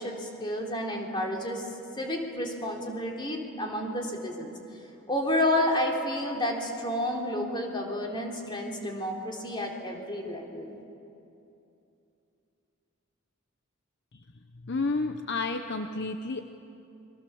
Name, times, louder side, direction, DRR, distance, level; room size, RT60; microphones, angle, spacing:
voice 1, 0.0-1.6 2.0-4.5 5.1-10.7, left 1 dB, 25° left, 0 dB, 3.5 m, -30 dB
voice 2, 14.5-16.4, left 3 dB, 55° left, 7 dB, 0.8 m, -30 dB
29.5 x 23.0 x 7.1 m, 2.7 s
head